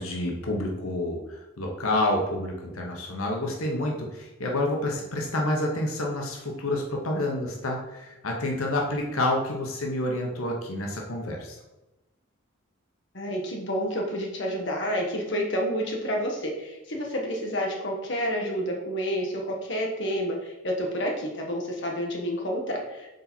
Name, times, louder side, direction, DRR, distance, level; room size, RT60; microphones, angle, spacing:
voice 1, 0.0-11.5, left 1 dB, 90° left, 0 dB, 1.0 m, -28 dB
voice 2, 13.1-23.1, equal, 55° left, 0 dB, 1.2 m, -29 dB
6.6 x 4.0 x 4.4 m, 1.0 s
head